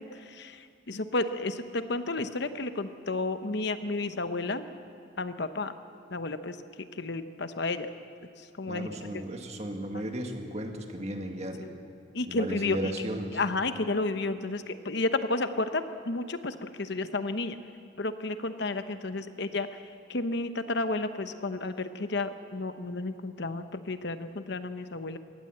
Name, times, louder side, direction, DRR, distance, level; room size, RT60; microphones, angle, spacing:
voice 1, 0.0-4.6 5.2-5.7 6.1-7.9 8.4-9.2 9.9-10.0 11.6-11.7 12.1-12.9 13.3-17.6 18.0-19.8 20.1-25.2, left 2 dB, 60° left, 10 dB, 0.9 m, -32 dB
voice 2, 8.7-11.7 12.3-13.4, right 1 dB, 35° right, 4 dB, 1.9 m, -35 dB
23.0 x 18.0 x 7.8 m, 2.5 s
head